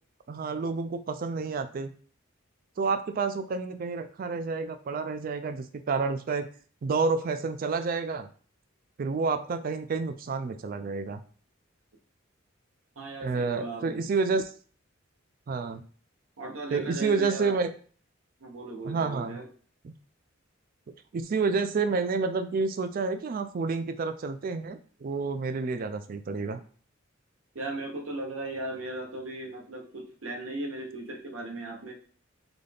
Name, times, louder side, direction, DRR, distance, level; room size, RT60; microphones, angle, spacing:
voice 1, 0.3-1.9 2.8-6.5 6.8-8.3 9.0-11.2 13.2-14.5 15.5-15.8 16.7-17.7 18.8-19.4 19.8-19.9 21.1-26.6, right 4 dB, 45° right, 9 dB, 0.3 m, -29 dB
voice 2, 13.0-14.1 16.4-17.5 18.4-19.5 27.5-31.9, right 2 dB, 80° right, 2 dB, 0.9 m, -37 dB
3.9 x 2.4 x 3.4 m, 0.42 s
head